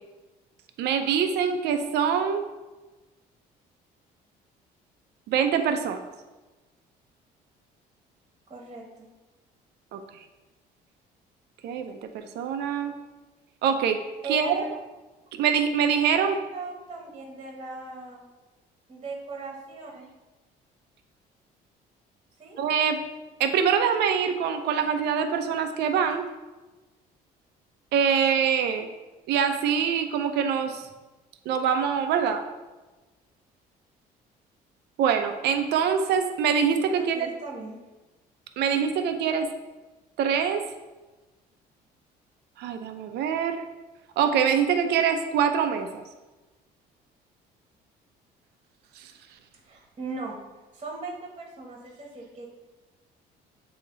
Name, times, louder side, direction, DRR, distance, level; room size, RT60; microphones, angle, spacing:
voice 1, 0.8-2.4 5.3-6.0 9.9-10.0 11.6-12.9 13.6-14.0 14.3-14.6 15.3-16.4 22.6-23.0 23.4-26.2 27.9-28.9 29.3-30.9 31.5-32.4 35.0-37.3 38.6-39.5 40.2-40.6 42.6-43.6 44.2-46.0 49.0-49.1, right 7 dB, 75° right, 7 dB, 0.6 m, -24 dB
voice 2, 8.5-9.1 14.2-14.7 16.3-18.2 18.9-20.1 22.4-22.6 37.0-37.8 49.6-50.4 50.7-52.5, right 3 dB, 30° right, -1 dB, 1.3 m, -38 dB
8.5 x 2.9 x 3.9 m, 1.2 s
cardioid pair, 110°, 17 cm